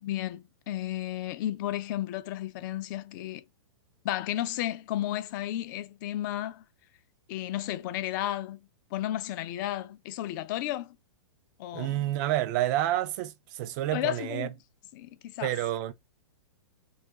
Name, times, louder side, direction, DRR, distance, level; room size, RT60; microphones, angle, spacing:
voice 1, 0.0-3.4 4.0-6.6 7.3-8.6 8.9-11.0 11.6-12.1 13.9-14.5 14.9-15.5, left 13 dB, 40° left, 0.3 m, -33 dB
voice 2, 11.7-14.5 15.4-15.9, right 14 dB, 40° right, 0.4 m, -29 dB
2.3 x 2.2 x 3.6 m
hypercardioid pair, 130°, 15 cm